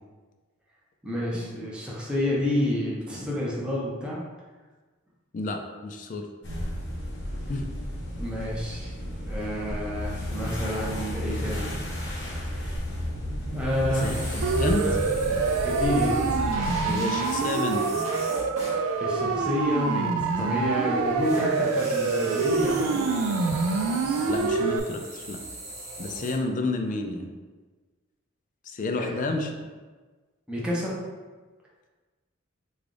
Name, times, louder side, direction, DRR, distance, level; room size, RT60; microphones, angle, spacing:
voice 1, 1.0-4.2 8.2-12.8 13.5-14.2 15.4-16.4 19.0-20.1 20.4-23.1 29.0-29.3 30.5-31.0, left 1 dB, 5° right, -6 dB, 0.6 m, -29 dB
voice 2, 5.3-6.3 7.5-7.7 13.9-14.9 16.8-17.8 24.3-25.4 26.0-27.3 28.7-29.5, left 2 dB, 40° left, 4 dB, 0.3 m, -30 dB
sound 1, 6.4-16.9, equal, 55° left, 0.8 m, -32 dB
sound 2, 13.9-18.8 21.2-26.3, right 1 dB, 35° right, 1.0 m, -39 dB
Siren, 14.4-24.8, right 4 dB, 90° right, 0.3 m, -26 dB
3.3 x 2.3 x 3.7 m, 1.3 s
head